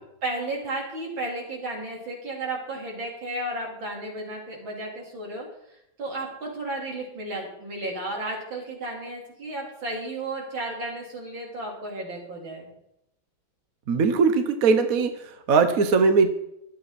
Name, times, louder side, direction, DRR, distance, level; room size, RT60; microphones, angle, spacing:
voice 1, 0.2-5.5 6.0-12.7, right 2 dB, 70° right, -2 dB, 4.6 m, -33 dB
voice 2, 13.9-16.3, right 4 dB, 50° right, 8 dB, 1.3 m, -20 dB
23.0 x 8.1 x 4.2 m, 0.81 s
omnidirectional pair, 2.2 m